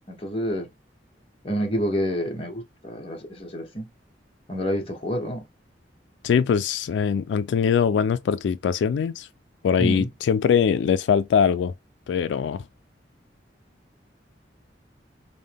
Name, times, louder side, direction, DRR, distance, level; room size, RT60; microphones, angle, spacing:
voice 1, 0.1-0.7 1.4-3.9 4.5-5.4 9.8-10.1, equal, 30° left, 1.1 m, -28 dB
voice 2, 6.2-9.3 9.6-11.7 12.1-12.6, left 7 dB, 80° left, 0.3 m, -22 dB
5.4 x 2.2 x 3.4 m
head